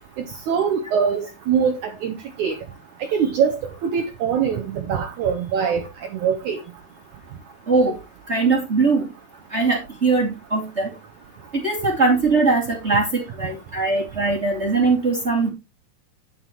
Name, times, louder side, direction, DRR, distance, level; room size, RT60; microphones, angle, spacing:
voice 1, 0.5-2.6 3.0-6.6, right 7 dB, 75° right, 1.8 m, -23 dB
voice 2, 7.7-8.0 8.3-9.1 9.5-10.9 11.5-15.5, right 3 dB, 25° right, 1.7 m, -21 dB
9.7 x 9.5 x 3.0 m
omnidirectional pair, 4.8 m